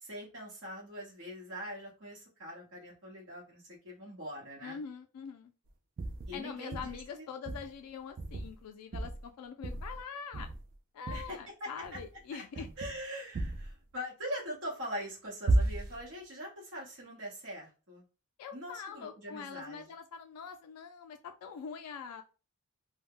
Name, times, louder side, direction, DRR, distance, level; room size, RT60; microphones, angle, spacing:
voice 1, 0.0-4.8 6.3-7.3 11.1-11.7 12.3-12.4 12.8-18.0 18.5-19.9, equal, 55° right, -5 dB, 1.0 m, -42 dB
voice 2, 4.6-5.5 6.3-10.5 10.9-12.7 18.4-22.2, left 6 dB, 90° left, 5 dB, 0.3 m, -44 dB
sound 1, 6.0-6.4 6.7-7.0 7.4-7.7 8.2-8.6 8.9-9.3 9.6-10.0 10.3-10.7 11.1-11.3 11.8-12.2 12.5-13.0 13.3-13.7 15.5-16.0, right 2 dB, 40° right, 0.3 m, -33 dB
2.2 x 2.0 x 3.5 m, 0.34 s
head